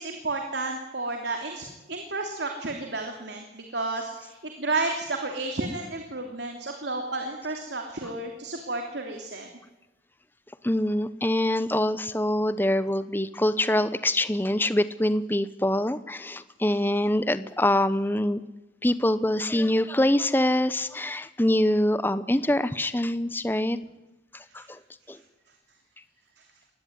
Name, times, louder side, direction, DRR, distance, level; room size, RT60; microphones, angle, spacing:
voice 1, 0.0-9.5 24.6-24.7, right 2 dB, 80° right, 4 dB, 3.0 m, -32 dB
voice 2, 10.6-18.4 18.8-23.8 24.3-24.8 25.1-25.2, left 1 dB, 10° left, 14 dB, 0.9 m, -24 dB
23.5 x 19.0 x 9.5 m, 1.1 s
head